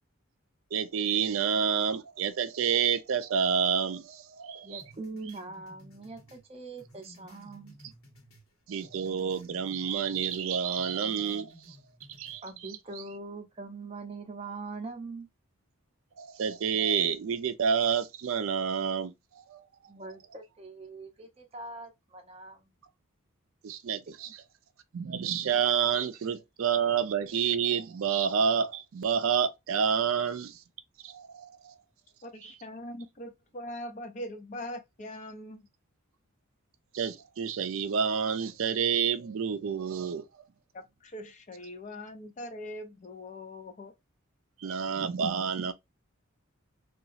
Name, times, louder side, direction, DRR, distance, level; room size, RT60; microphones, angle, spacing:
voice 1, 0.7-4.8 8.7-11.8 12.2-12.4 16.2-19.1 19.5-19.6 23.6-24.3 24.9-30.6 31.0-31.7 36.9-40.3 44.6-45.7, right 7 dB, 70° right, 0.4 m, -29 dB
voice 2, 4.6-7.8 12.4-15.3 19.9-22.7, right 3 dB, 30° right, 0.6 m, -42 dB
sound 1, 4.8-8.5 8.8-10.4 10.8-12.4, equal, 80° left, 1.1 m, -55 dB
voice 3, 32.2-35.7 40.7-43.9, left 1 dB, 35° left, 0.5 m, -42 dB
2.8 x 2.4 x 2.5 m
head